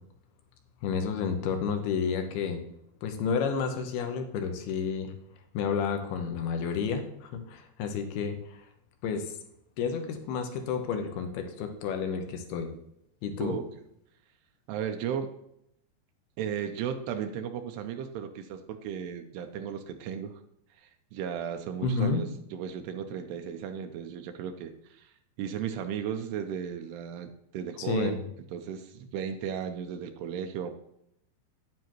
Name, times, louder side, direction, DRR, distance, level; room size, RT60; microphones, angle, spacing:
voice 1, 0.8-2.6 3.0-5.1 5.5-8.6 9.0-9.3 9.8-12.7 13.2-13.5 21.8-22.2 27.8-28.2, left 6 dB, 75° left, 6 dB, 2.9 m, -30 dB
voice 2, 14.7-15.3 16.4-20.4 20.8-25.1 25.4-28.2 28.5-30.7, right 8 dB, 85° right, 6 dB, 2.8 m, -35 dB
9.6 x 9.5 x 3.1 m, 0.76 s
omnidirectional pair, 4.6 m